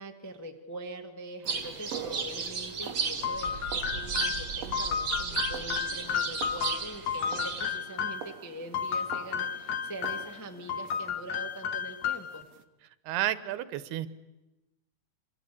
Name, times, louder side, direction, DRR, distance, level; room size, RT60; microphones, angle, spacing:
voice 1, 0.0-12.5, right 1 dB, 15° left, 2 dB, 0.7 m, -43 dB
sound 1, 1.4-12.6, right 9 dB, 60° right, 1.8 m, -47 dB
sound 2, 1.5-7.8, right 5 dB, 35° right, 2.2 m, -34 dB
sound 3, 3.2-8.3 8.7-10.4 10.7-12.4, left 7 dB, 60° left, 2.4 m, -32 dB
voice 2, 13.1-14.1, right 13 dB, 85° right, 14 dB, 3.1 m, -31 dB
26.5 x 25.5 x 8.6 m, 1.0 s
omnidirectional pair, 4.5 m